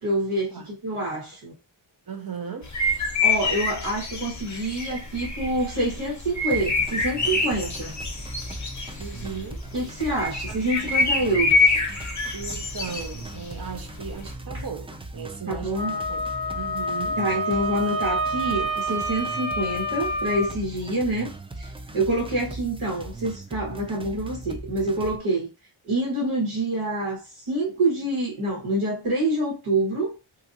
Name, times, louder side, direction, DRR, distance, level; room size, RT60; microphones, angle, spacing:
voice 1, 0.0-1.5 3.2-7.9 9.7-11.7 15.5-16.0 17.2-25.5 25.8-30.2, right 1 dB, 80° right, 1.4 m, -27 dB
voice 2, 2.1-2.7 9.0-9.7 10.5-10.9 12.3-16.3 16.5-17.2, right 6 dB, 45° right, 0.8 m, -37 dB
sound 1, 2.6-14.3, left 3 dB, 35° left, 0.8 m, -26 dB
sound 2, 6.5-25.2, right 2 dB, 15° right, 0.3 m, -39 dB
Wind instrument woodwind instrument, 15.7-20.5, right 1 dB, 10° left, 0.7 m, -28 dB
2.6 x 2.5 x 2.6 m
cardioid pair, 50°, 49 cm